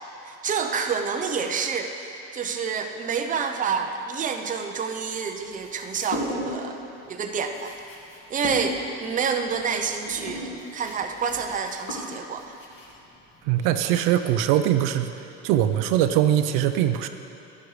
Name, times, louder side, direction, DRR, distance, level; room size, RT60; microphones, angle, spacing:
voice 1, 0.2-1.9 2.3-7.7 8.3-12.6, right 6 dB, 25° right, 5 dB, 0.6 m, -28 dB
sound 1, 5.5-6.7 7.0-14.4, left 1 dB, 40° left, 2.1 m, -37 dB
voice 2, 13.5-17.1, right 11 dB, 80° right, 9 dB, 0.5 m, -22 dB
11.0 x 10.5 x 3.3 m, 3.0 s
cardioid pair, 120°, 31 cm